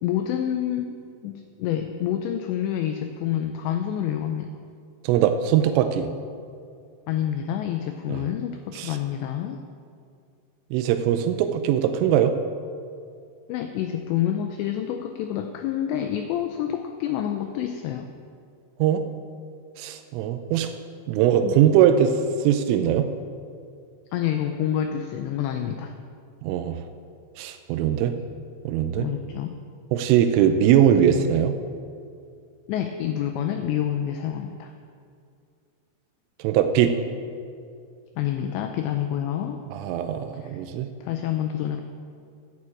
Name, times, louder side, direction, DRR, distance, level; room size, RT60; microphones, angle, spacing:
voice 1, 0.0-1.0 1.2-4.5 7.1-9.6 13.5-18.1 21.4-21.6 24.1-25.9 29.0-29.5 32.7-34.7 38.2-39.6 40.4-40.6 41.0-41.8, left 10 dB, 85° left, 6 dB, 2.5 m, -28 dB
voice 2, 5.0-6.1 8.1-8.2 8.8-9.0 10.7-12.3 18.8-19.1 19.8-20.7 21.1-22.1 22.4-23.1 26.4-26.8 27.4-28.1 28.7-29.1 29.9-31.5 36.4-37.0 39.7-40.9, right 10 dB, 90° right, 7 dB, 3.2 m, -21 dB
11.5 x 6.3 x 8.4 m, 2.4 s
omnidirectional pair, 5.6 m